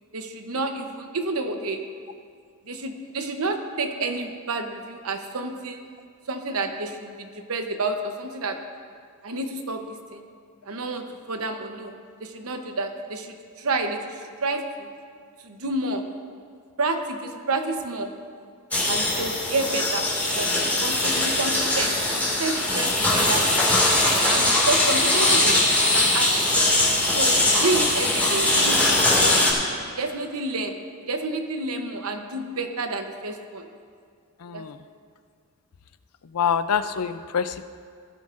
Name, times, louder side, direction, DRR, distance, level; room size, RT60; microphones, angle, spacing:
voice 1, 0.1-1.8 2.7-5.8 6.3-8.6 9.2-10.2 10.7-11.9 12.2-14.1 14.4-14.9 15.4-16.0 16.8-18.1 18.9-20.1 20.3-20.5 20.8-23.6 24.3-26.3 27.1-29.4 29.8-30.8 31.1-33.7 34.5-34.6, right 2 dB, 70° right, 5 dB, 0.9 m, -29 dB
sound 1, 18.7-29.5, left 1 dB, 5° left, 2.2 m, -21 dB
voice 2, 36.3-37.6, left 7 dB, 85° left, 11 dB, 0.5 m, -25 dB
16.5 x 12.5 x 2.6 m, 2.2 s
head